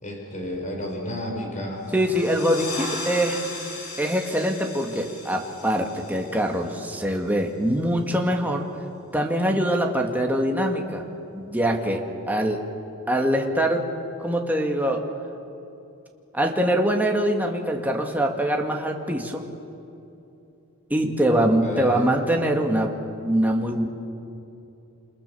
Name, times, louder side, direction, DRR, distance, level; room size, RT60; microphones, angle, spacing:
voice 1, 0.0-1.8 21.4-22.1, left 1 dB, 35° left, 1 dB, 4.7 m, -32 dB
sound 1, 1.8-7.2, left 2 dB, 75° left, 7.1 m, -37 dB
voice 2, 1.9-3.4 4.0-8.7 9.1-11.1 11.3-12.6 13.1-13.9 14.2-15.1 16.3-19.4 20.9-22.9 23.2-23.9, right 1 dB, 10° right, 1 dB, 2.1 m, -23 dB
28.5 x 27.5 x 7.1 m, 2.8 s
head